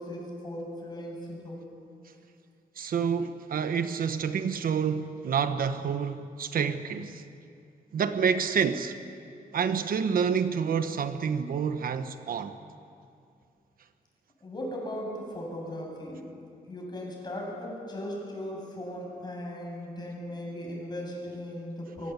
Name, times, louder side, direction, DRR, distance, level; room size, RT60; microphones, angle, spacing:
voice 1, 0.0-1.6 14.4-16.3 16.6-22.1, left 1 dB, 30° left, 7.8 m, -37 dB
voice 2, 2.8-7.2 7.9-9.0 9.5-12.6, right 6 dB, 70° right, 1.1 m, -28 dB
24.5 x 22.5 x 8.4 m
wide cardioid pair, 135°, 15 cm